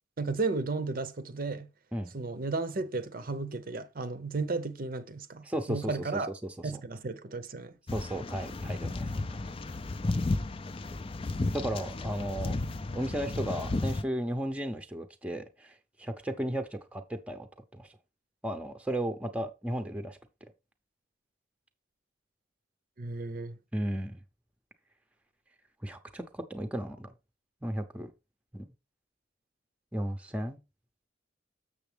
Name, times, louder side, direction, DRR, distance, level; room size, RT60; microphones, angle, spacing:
voice 1, 0.2-1.7 2.1-6.3 6.6-7.8 23.0-23.6, right 3 dB, 50° right, 0.7 m, -34 dB
voice 2, 5.4-5.9 6.4-6.5 7.9-9.2 11.5-12.6 12.9-17.5 17.7-17.9 18.4-20.2 23.7-24.2 25.8-27.1 27.6-28.1 28.5-28.7 29.9-30.6, right 1 dB, 5° right, 0.7 m, -34 dB
sound 1, 7.9-14.0, left 2 dB, 30° left, 0.4 m, -33 dB
7.0 x 6.8 x 3.4 m
head